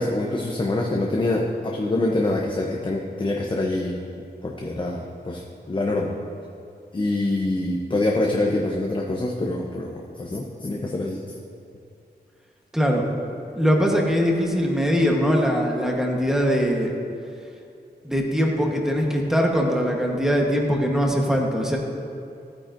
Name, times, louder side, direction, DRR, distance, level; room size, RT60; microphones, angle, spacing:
voice 1, 0.0-4.0 4.4-6.2 6.9-11.2, left 2 dB, 30° left, -1 dB, 0.7 m, -25 dB
voice 2, 12.7-13.1 13.5-16.9 18.0-21.8, equal, 5° right, 0 dB, 1.1 m, -21 dB
14.5 x 8.7 x 2.6 m, 2.5 s
wide cardioid pair, 145°, 18 cm